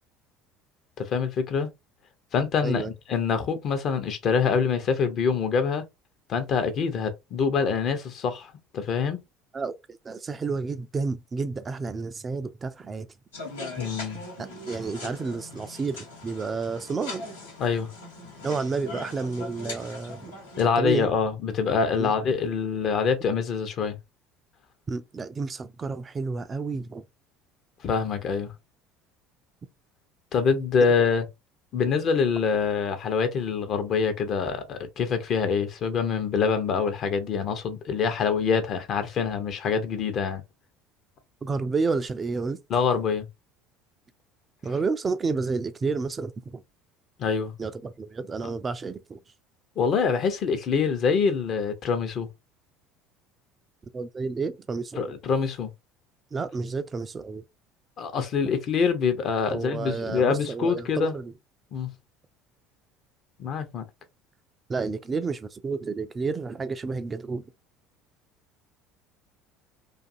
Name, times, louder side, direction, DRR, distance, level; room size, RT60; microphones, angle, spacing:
voice 1, 1.0-1.7 2.3-5.8 6.3-9.2 13.8-14.2 17.6-17.9 20.6-24.0 27.8-28.5 30.3-31.2 31.7-40.4 42.7-43.3 47.2-47.5 48.4-48.5 49.8-52.3 55.0-55.7 58.0-61.1 61.7-61.9 63.4-63.8, left 5 dB, 50° left, 0.6 m, -25 dB
voice 2, 10.0-13.1 14.4-17.3 18.4-20.3 20.8-21.1 22.0-22.1 24.9-27.0 41.4-42.6 44.6-46.6 47.6-49.2 53.9-55.1 56.3-57.4 59.5-61.3 64.7-67.4, right 4 dB, 30° right, 0.3 m, -30 dB
sound 1, 13.3-20.7, left 2 dB, 85° left, 1.0 m, -40 dB
2.5 x 2.4 x 2.5 m
figure-of-eight pair, 65°, 0 cm